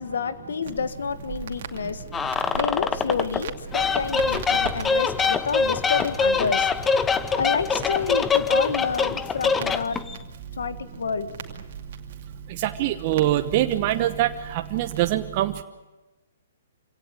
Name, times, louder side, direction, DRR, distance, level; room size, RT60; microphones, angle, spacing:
voice 1, 0.0-10.0 10.6-11.3, left 5 dB, 80° left, 12 dB, 1.7 m, -29 dB
Crackle, 0.6-15.1, right 5 dB, 60° right, 2.4 m, -40 dB
sound 1, 2.1-3.4 3.7-10.2, left 5 dB, 15° left, 0.9 m, -24 dB
voice 2, 12.6-14.3 14.7-15.6, right 14 dB, 40° right, 7 dB, 1.1 m, -23 dB
26.0 x 17.5 x 9.1 m, 1.1 s
hypercardioid pair, 135°, 0 cm